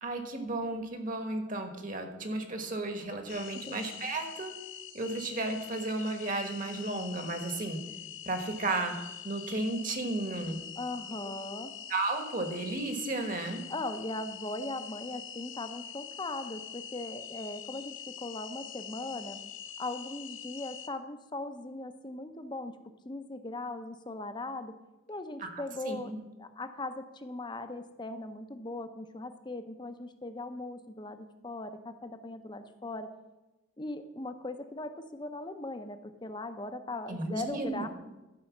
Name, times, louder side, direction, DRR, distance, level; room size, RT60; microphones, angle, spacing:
voice 1, 0.0-4.5 4.9-7.8 8.2-8.9 9.2-10.6 11.9-13.6 25.4-26.2 37.1-37.8, right 2 dB, 40° right, 6 dB, 1.3 m, -34 dB
sound 1, 3.3-20.9, left 9 dB, 65° left, 0.7 m, -44 dB
voice 2, 10.8-11.7 13.7-19.4 19.8-22.8 23.0-24.8 25.1-26.1 26.4-33.1 33.8-37.9, left 2 dB, 20° left, 9 dB, 0.6 m, -39 dB
12.0 x 5.4 x 7.2 m, 1.0 s
head